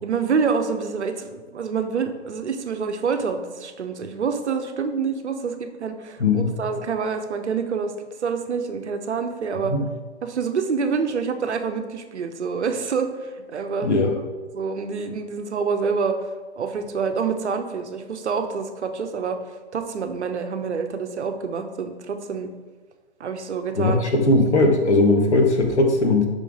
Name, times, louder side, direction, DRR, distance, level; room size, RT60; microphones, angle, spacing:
voice 1, 0.0-7.9 8.2-9.7 10.2-13.9 14.5-16.2 16.6-19.4 19.7-22.5 23.2-24.0, right 5 dB, 75° right, 7 dB, 0.8 m, -27 dB
voice 2, 13.8-14.1 23.7-26.3, left 2 dB, 85° left, 3 dB, 1.0 m, -18 dB
5.4 x 3.8 x 5.0 m, 1.4 s
figure-of-eight pair, 120°, 34 cm